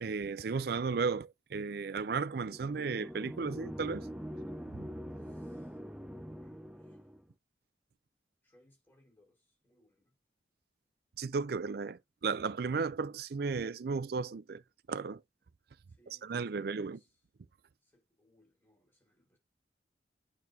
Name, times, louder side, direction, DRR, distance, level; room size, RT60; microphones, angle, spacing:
voice 1, 0.0-4.1 4.7-4.9 11.2-14.6 14.9-15.2 16.2-17.0, right 5 dB, 60° right, 0.4 m, -34 dB
sound 1, 2.3-7.2, equal, 5° right, 0.6 m, -44 dB
voice 2, 5.1-7.0 8.4-10.2 15.9-17.2 17.8-19.4, left 1 dB, 10° left, 4.3 m, -69 dB
9.4 x 6.0 x 2.7 m
head